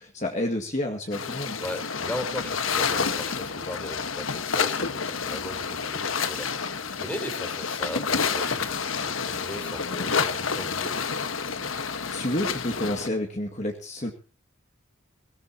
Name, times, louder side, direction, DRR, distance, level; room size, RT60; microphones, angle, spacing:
voice 1, 0.0-1.6 12.1-14.1, left 1 dB, 35° left, 2 dB, 2.1 m, -29 dB
sound 1, 1.1-13.1, left 5 dB, 85° left, 1.4 m, -29 dB
voice 2, 1.6-11.0, equal, 5° left, 7 dB, 4.0 m, -38 dB
20.0 x 18.5 x 2.8 m, 0.36 s
head